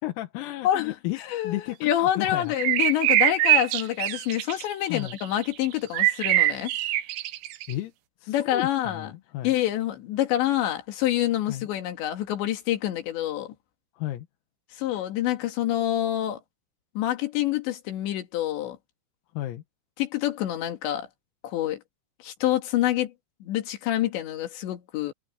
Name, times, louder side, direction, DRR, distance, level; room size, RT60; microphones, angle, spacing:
voice 1, 0.0-2.5 4.9-5.2 7.7-7.9 8.2-9.6 11.5-11.7 14.0-14.3 19.3-19.6, left 15 dB, 85° left, 4.4 m, -33 dB
voice 2, 0.6-1.0 1.3-6.7 8.3-9.1 9.4-13.5 14.7-16.4 17.0-18.8 20.0-21.1 21.4-21.8 22.2-23.1 23.4-25.1, left 12 dB, 65° left, 4.2 m, -27 dB
sound 1, 2.6-5.5 5.9-7.7, right 17 dB, 85° right, 3.9 m, -23 dB
omnidirectional pair, 6.0 m